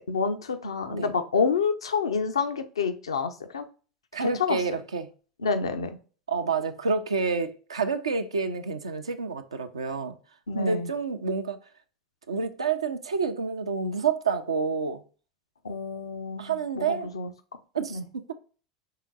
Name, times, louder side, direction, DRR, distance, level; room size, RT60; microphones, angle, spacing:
voice 1, 0.0-3.7 4.2-4.6 5.4-6.0 10.5-10.9 15.6-17.3 17.9-18.0, left 5 dB, 75° left, 0.6 m, -28 dB
voice 2, 4.1-5.1 6.3-10.1 10.5-11.6 12.3-15.0 16.4-17.1 17.7-18.0, right 5 dB, 75° right, 0.5 m, -28 dB
5.7 x 3.7 x 2.4 m
figure-of-eight pair, 80°, 3 cm